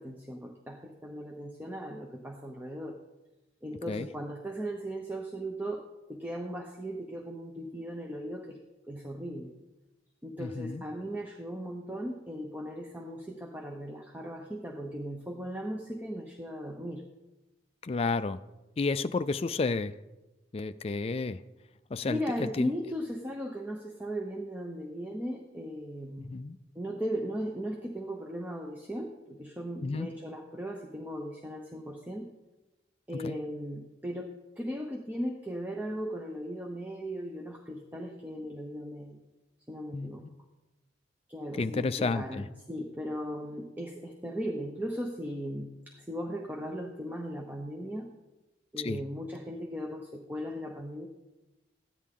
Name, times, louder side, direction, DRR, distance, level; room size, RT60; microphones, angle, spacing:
voice 1, 0.0-3.0 3.6-8.6 8.9-9.5 10.2-17.0 22.1-26.4 26.7-32.3 33.1-39.2 39.7-40.2 41.3-48.1 48.7-51.1, equal, 10° right, 0.7 m, -37 dB
voice 2, 10.4-10.8 17.8-18.4 18.8-19.9 20.5-21.4 21.9-22.7 26.2-26.6 29.8-30.1 33.2-33.4 39.9-40.3 41.6-42.4 48.8-49.0, left 3 dB, 30° left, 0.3 m, -31 dB
14.5 x 10.0 x 3.7 m
head